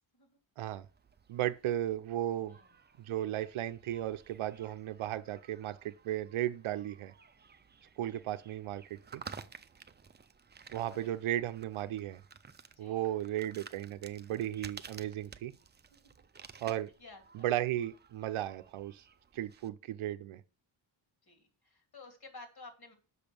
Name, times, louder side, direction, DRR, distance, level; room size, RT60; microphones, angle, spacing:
sound 1, 0.7-19.7, right 5 dB, 25° right, 0.5 m, -54 dB
voice 1, 1.3-2.6 3.0-7.1 8.0-9.2 10.7-12.2 12.8-15.5 16.6-16.9 17.3-19.0 19.3-20.4, right 12 dB, 90° right, 0.6 m, -35 dB
voice 2, 12.8-13.1 15.9-16.0 17.0-17.5 21.2-22.9, left 3 dB, 50° left, 2.5 m, -53 dB
6.6 x 5.2 x 6.8 m
wide cardioid pair, 115°, 48 cm